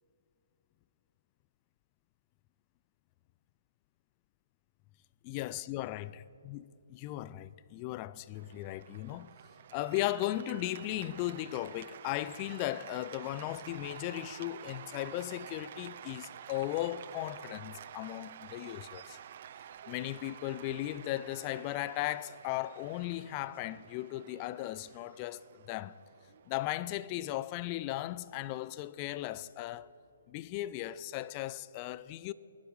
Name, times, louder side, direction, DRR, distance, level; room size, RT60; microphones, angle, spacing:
voice 1, 5.2-9.4 9.7-19.2 19.9-26.0 26.5-29.9 30.3-32.3, left 15 dB, 30° left, 0.3 m, -37 dB
Cheering / Applause, 8.3-27.6, right 9 dB, 50° right, 0.4 m, -50 dB
20.5 x 11.5 x 3.2 m
hypercardioid pair, 140°, 0 cm